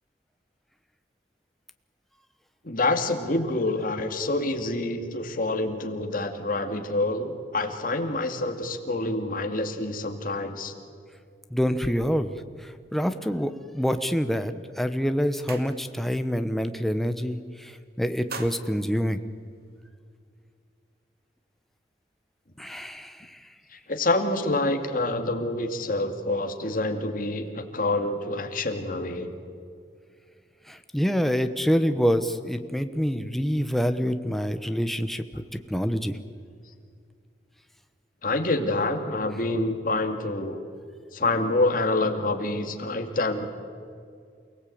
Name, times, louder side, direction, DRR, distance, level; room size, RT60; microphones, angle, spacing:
voice 1, 2.6-10.7 23.9-29.3 38.2-40.6 41.1-43.4, left 2 dB, 50° left, 5 dB, 2.3 m, -27 dB
voice 2, 11.5-12.3 12.6-17.7 18.0-19.2 22.6-23.4 30.7-35.4 35.7-36.1, equal, ahead, 8 dB, 1.0 m, -26 dB
sound 1, 14.7-14.8 15.0-16.2 16.5-16.8 17.1-17.7 18.0-19.9, right 4 dB, 55° right, 2.1 m, -43 dB
28.5 x 18.0 x 8.7 m, 2.3 s
head